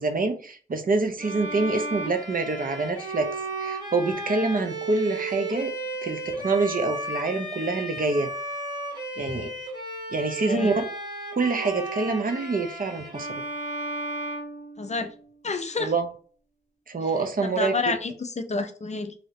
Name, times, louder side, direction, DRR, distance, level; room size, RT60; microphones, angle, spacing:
voice 1, 0.0-3.3 3.6-5.7 6.0-8.3 9.2-9.5 10.1-10.8 11.3-13.3 15.8-16.1 16.9-17.9, right 3 dB, 50° right, 0.6 m, -26 dB
Bowed string instrument, 1.2-15.3, right 2 dB, 25° right, 1.4 m, -34 dB
voice 2, 14.8-15.1 15.4-15.9 17.4-19.1, left 4 dB, 40° left, 0.4 m, -29 dB
3.0 x 2.7 x 2.8 m
cardioid pair, 60°, 18 cm